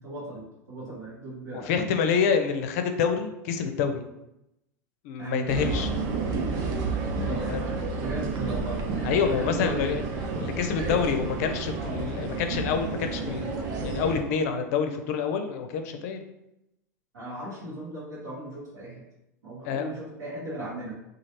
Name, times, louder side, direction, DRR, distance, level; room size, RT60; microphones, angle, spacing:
voice 1, 0.0-1.7 5.2-5.5 7.2-8.8 9.2-9.9 10.8-11.0 17.1-19.0 19.4-21.0, right 1 dB, 80° right, -9 dB, 1.0 m, -37 dB
voice 2, 1.5-4.0 5.0-5.9 7.3-7.6 9.0-10.0 10.4-13.6 13.8-16.2 19.6-19.9, left 6 dB, 60° left, 6 dB, 0.4 m, -27 dB
sound 1, 5.5-14.2, right 3 dB, 45° right, 0.6 m, -30 dB
3.1 x 2.4 x 2.8 m, 0.89 s
hypercardioid pair, 90°, 9 cm